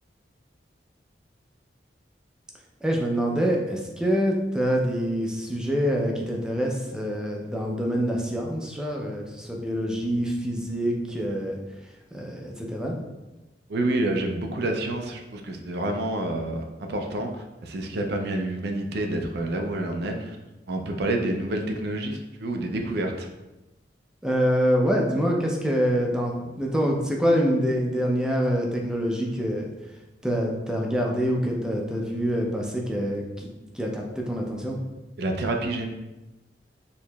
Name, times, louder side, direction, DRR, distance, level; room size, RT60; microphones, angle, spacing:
voice 1, 2.8-11.6 12.1-12.9 24.2-29.7 30.2-33.5 33.7-34.8, equal, 5° right, -1 dB, 0.5 m, -25 dB
voice 2, 13.7-20.4 20.7-23.3 35.2-35.9, right 1 dB, 65° right, 3 dB, 0.4 m, -28 dB
4.5 x 2.9 x 2.3 m, 1.1 s
head